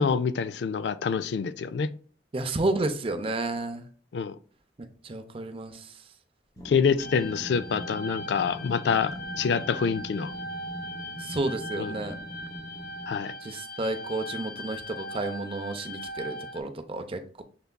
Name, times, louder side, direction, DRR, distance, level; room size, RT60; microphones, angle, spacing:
voice 1, 0.0-1.9 4.1-4.4 6.6-10.3 11.7-11.9 13.1-13.3, left 6 dB, 70° left, 0.4 m, -26 dB
voice 2, 2.3-3.8 5.0-5.8 11.2-12.1 13.4-17.4, right 2 dB, 30° right, 0.5 m, -31 dB
sound 1, 6.6-13.3, equal, 20° left, 0.7 m, -42 dB
sound 2, 7.0-16.6, left 1 dB, 85° left, 1.8 m, -39 dB
6.6 x 3.4 x 2.2 m
head